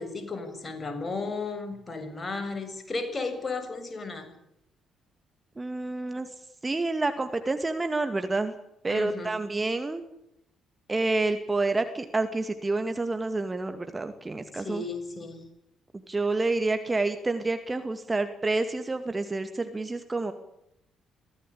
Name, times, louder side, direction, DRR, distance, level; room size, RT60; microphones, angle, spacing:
voice 1, 0.0-4.3 8.9-9.3 14.6-15.4, left 3 dB, 30° left, 8 dB, 7.3 m, -34 dB
voice 2, 5.6-6.3 6.6-8.5 8.8-10.0 10.9-14.8 15.9-20.3, right 3 dB, 25° right, 9 dB, 2.4 m, -28 dB
24.0 x 17.0 x 8.6 m, 0.81 s
figure-of-eight pair, 45°, 0 cm